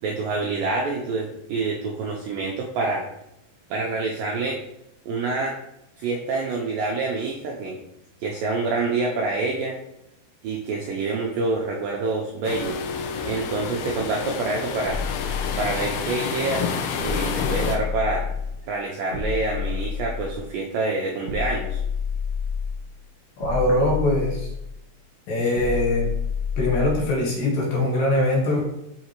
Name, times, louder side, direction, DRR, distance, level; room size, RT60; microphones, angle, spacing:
voice 1, 0.0-3.0 3.7-4.6 5.1-5.6 6.0-7.8 8.2-9.8 10.4-12.8 13.3-15.0 15.6-16.7 17.0-18.3 18.7-21.8, right 3 dB, 85° right, -1 dB, 2.0 m, -26 dB
sound 1, 12.4-17.8, left 6 dB, 80° left, 2.5 m, -29 dB
Mallet percussion, 12.6-18.4, left 2 dB, 40° right, 2.0 m, -39 dB
sound 2, 14.8-16.1 17.0-18.6 19.1-20.5 21.2-22.9 23.4-24.8 25.5-27.1, left 6 dB, 25° left, 1.3 m, -29 dB
voice 2, 23.4-24.5 25.3-26.1 26.6-28.6, left 1 dB, 65° left, -3 dB, 2.8 m, -22 dB
6.4 x 5.6 x 2.9 m, 0.82 s
omnidirectional pair, 4.7 m